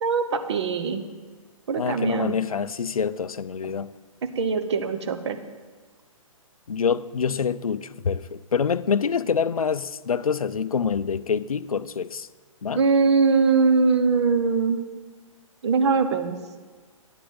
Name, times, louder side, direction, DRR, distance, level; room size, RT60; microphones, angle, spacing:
voice 1, 0.0-1.0 1.7-2.4 4.2-5.4 12.7-14.8 15.6-16.6, right 5 dB, 55° right, 0.9 m, -22 dB
voice 2, 1.8-3.9 6.7-12.3 12.6-12.8, left 6 dB, 85° left, 0.4 m, -26 dB
9.1 x 5.2 x 7.9 m
figure-of-eight pair, 130°, 18 cm